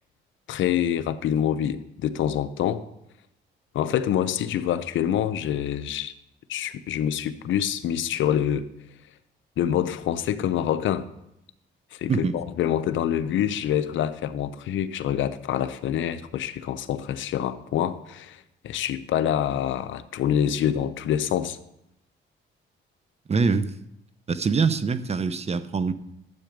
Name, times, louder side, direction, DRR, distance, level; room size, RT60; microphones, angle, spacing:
voice 1, 0.5-2.8 3.7-6.1 6.5-8.7 9.6-11.1 11.9-21.6, left 10 dB, 75° left, 12 dB, 0.7 m, -26 dB
voice 2, 23.3-23.7 24.3-25.9, right 5 dB, 30° right, 13 dB, 0.8 m, -24 dB
12.5 x 7.9 x 5.1 m, 0.82 s
cardioid pair, 90°, 20 cm